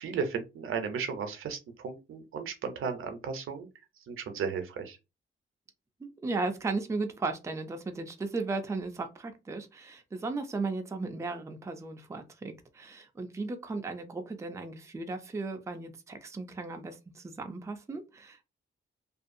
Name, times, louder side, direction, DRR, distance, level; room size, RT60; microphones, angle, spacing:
voice 1, 0.0-3.7 4.1-5.0, right 6 dB, 85° right, 0.6 m, -35 dB
voice 2, 6.0-18.4, right 3 dB, 15° right, 0.4 m, -36 dB
2.6 x 2.3 x 2.5 m
wide cardioid pair, 140°, 21 cm